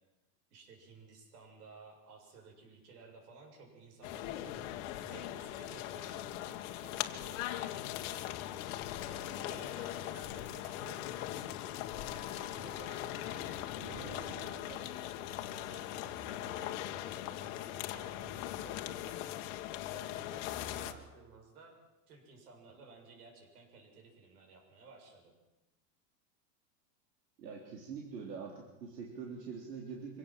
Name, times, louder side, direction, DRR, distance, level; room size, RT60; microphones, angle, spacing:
voice 1, 0.5-4.6 5.0-8.3 9.1-11.0 11.9-15.2 15.5-19.3 19.9-21.7 22.1-25.3, right 4 dB, 65° right, 4 dB, 7.2 m, -55 dB
sound 1, 4.0-20.9, left 13 dB, 50° left, 1.8 m, -40 dB
sound 2, 13.7-15.3, right 3 dB, 45° right, 4.1 m, -51 dB
voice 2, 27.4-30.2, right 5 dB, 90° right, 1 dB, 3.9 m, -44 dB
25.0 x 17.0 x 7.7 m, 0.98 s
supercardioid pair, 155°, 48 cm